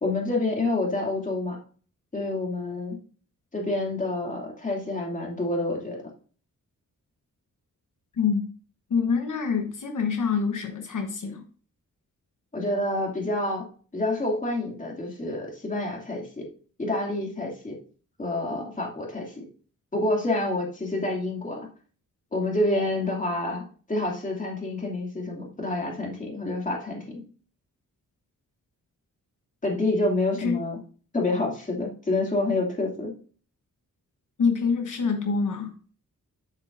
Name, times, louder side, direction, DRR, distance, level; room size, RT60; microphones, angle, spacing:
voice 1, 0.0-1.6 2.1-3.0 3.5-6.0 12.5-13.6 13.9-16.5 16.8-17.8 18.2-19.5 19.9-21.7 22.3-27.2 29.6-30.8 31.1-33.1, left 2 dB, 25° left, -1 dB, 2.5 m, -28 dB
voice 2, 8.9-11.4 30.4-30.6 34.4-35.7, left 5 dB, 65° left, 4 dB, 1.2 m, -26 dB
9.9 x 8.1 x 2.6 m, 0.40 s
wide cardioid pair, 170°, 32 cm